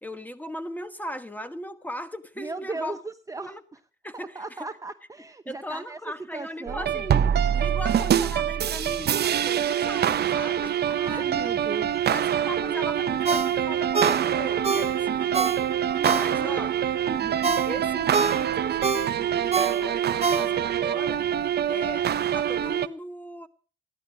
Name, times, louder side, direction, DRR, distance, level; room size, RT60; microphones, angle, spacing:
voice 1, 0.0-3.0 3.4-3.6 4.0-4.7 5.5-10.8 11.1-11.2 12.1-15.7 16.1-16.7 17.6-21.2 21.7-22.1 22.3-23.5, left 1 dB, 10° left, 1.3 m, -38 dB
voice 2, 2.4-3.8 4.1-7.2 10.8-11.9 16.0-16.6 17.1-17.6, right 3 dB, 15° right, 0.8 m, -37 dB
sound 1, 6.7-22.9, right 9 dB, 55° right, 0.7 m, -25 dB
Ringtone, 13.2-16.7 17.1-20.9 21.3-21.4, right 4 dB, 30° right, 1.1 m, -27 dB
14.5 x 11.5 x 4.9 m
cardioid pair, 90°, 20 cm